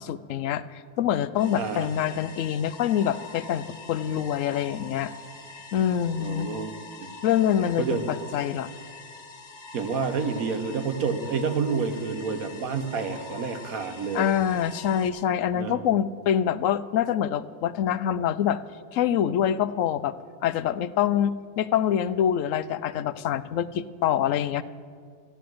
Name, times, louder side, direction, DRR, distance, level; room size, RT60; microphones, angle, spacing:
voice 1, 0.0-5.1 5.7-6.5 7.2-8.7 14.1-18.6 18.9-20.2 20.4-24.6, left 9 dB, 75° left, 15 dB, 1.0 m, -25 dB
sound 1, 1.4-15.1, left 3 dB, 35° left, 2.1 m, -44 dB
voice 2, 1.6-1.9 6.2-6.7 7.0-7.1 7.8-8.1 9.7-14.4 15.5-15.8, right 5 dB, 85° right, 8 dB, 1.5 m, -29 dB
14.0 x 10.0 x 7.7 m, 2.1 s
omnidirectional pair, 1.4 m